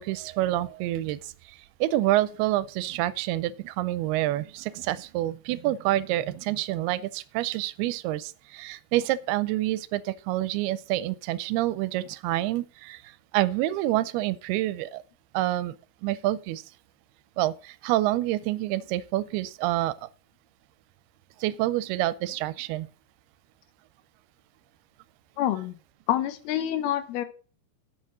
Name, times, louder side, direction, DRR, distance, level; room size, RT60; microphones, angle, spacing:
voice 1, 0.0-15.0 15.3-15.8 16.0-16.6 17.4-19.9 21.4-22.9, right 15 dB, 85° right, 2.6 m, -27 dB
voice 2, 25.4-25.8 26.1-27.3, left 12 dB, 85° left, 2.9 m, -27 dB
8.5 x 6.7 x 6.0 m
omnidirectional pair, 4.4 m